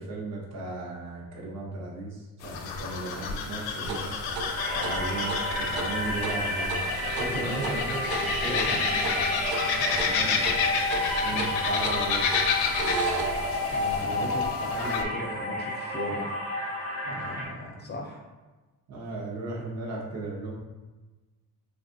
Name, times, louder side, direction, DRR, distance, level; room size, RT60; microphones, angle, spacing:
voice 1, 0.0-4.1 4.9-6.9 7.2-9.3 10.0-10.4 11.2-12.3 14.0-14.3 17.0-17.4 18.9-20.6, right 2 dB, 45° right, -3 dB, 0.8 m, -36 dB
sound 1, 2.4-15.0, left 5 dB, 90° left, 0.5 m, -30 dB
sound 2, 3.8-14.0, right 2 dB, 85° right, 0.6 m, -36 dB
sound 3, 4.6-17.5, left 1 dB, 65° right, 1.3 m, -31 dB
voice 2, 4.7-5.0 7.3-7.5 8.4-8.8 9.7-10.5 11.3-11.6 13.7-16.3 17.1-18.2, left 1 dB, 30° left, 0 dB, 0.4 m, -38 dB
3.4 x 2.4 x 2.5 m, 1.2 s
cardioid pair, 125°, 36 cm